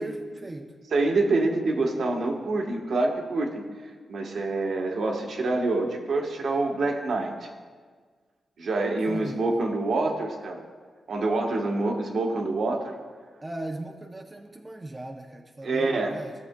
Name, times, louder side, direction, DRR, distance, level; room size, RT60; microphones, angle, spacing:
voice 1, 0.0-0.7 9.1-9.4 13.4-16.3, right 1 dB, 20° right, 2 dB, 0.6 m, -38 dB
voice 2, 0.9-3.6 4.1-7.5 8.6-10.6 11.1-13.0 15.6-16.1, right 2 dB, 70° right, 1 dB, 1.2 m, -26 dB
16.0 x 6.8 x 2.2 m, 1.5 s
wide cardioid pair, 120°, 0 cm